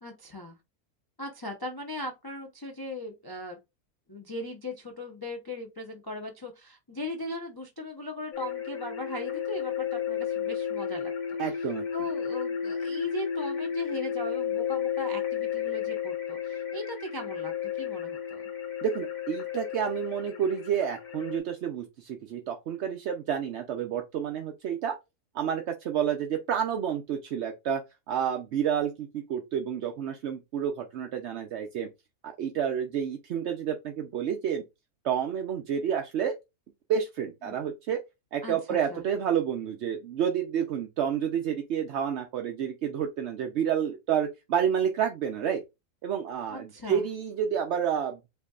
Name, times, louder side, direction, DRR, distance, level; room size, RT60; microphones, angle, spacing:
voice 1, 0.0-0.6 1.2-3.6 4.1-11.1 11.6-11.7 11.9-18.4 37.4-37.6 38.4-39.0 46.5-47.0, left 1 dB, 35° left, 0.3 m, -38 dB
sound 1, 8.3-21.4, left 8 dB, 60° left, 1.6 m, -33 dB
voice 2, 11.4-12.1 18.8-25.0 25.3-27.8 28.1-31.9 32.2-34.6 35.0-36.3 36.9-38.0 38.3-45.6 46.0-48.2, right 8 dB, 60° right, 0.7 m, -29 dB
8.1 x 2.7 x 2.3 m
omnidirectional pair, 1.6 m